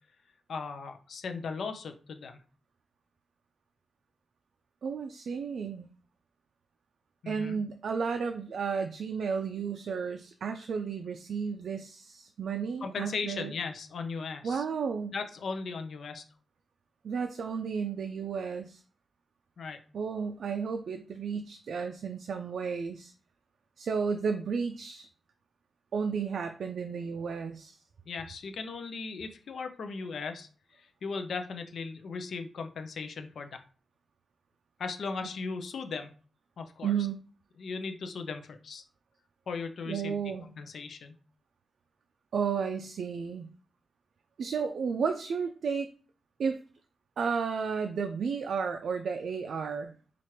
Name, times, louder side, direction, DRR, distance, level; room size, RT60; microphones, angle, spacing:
voice 1, 0.5-2.3 7.2-7.6 12.8-14.6 15.1-16.2 19.6-19.8 28.1-33.6 34.8-36.1 36.6-36.9 37.6-38.8 39.5-40.2 40.6-41.1, left 4 dB, 70° left, 7 dB, 0.5 m, -37 dB
voice 2, 4.8-5.9 7.3-13.5 14.4-15.2 17.0-18.8 19.9-23.1 23.8-25.1 25.9-27.8 36.8-37.2 39.9-40.5 42.3-43.5 44.4-45.9 46.4-46.6 47.2-49.9, right 6 dB, 70° right, 6 dB, 0.3 m, -33 dB
4.3 x 2.4 x 3.1 m, 0.39 s
wide cardioid pair, 170°, 0 cm